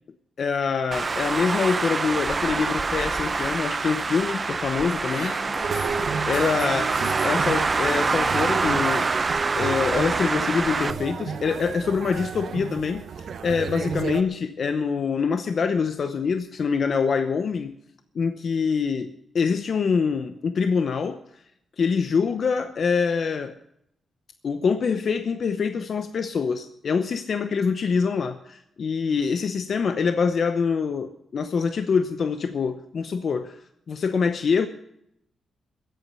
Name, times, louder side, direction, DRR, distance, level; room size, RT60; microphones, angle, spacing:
voice 1, 0.4-5.3 6.3-6.9 7.2-9.1 9.6-17.7 18.1-21.4 21.8-23.5 24.4-33.6 33.9-34.7, left 5 dB, 55° left, 8 dB, 0.8 m, -25 dB
Traffic noise roadway noise, 0.9-10.9, right 4 dB, 30° right, 0.6 m, -26 dB
voice 2, 5.1-7.6, left 5 dB, 85° left, 3 dB, 2.7 m, -40 dB
sound 1, 5.6-14.2, right 6 dB, 60° right, 1.0 m, -32 dB
21.5 x 8.4 x 5.6 m, 0.78 s
cardioid pair, 120°, 0 cm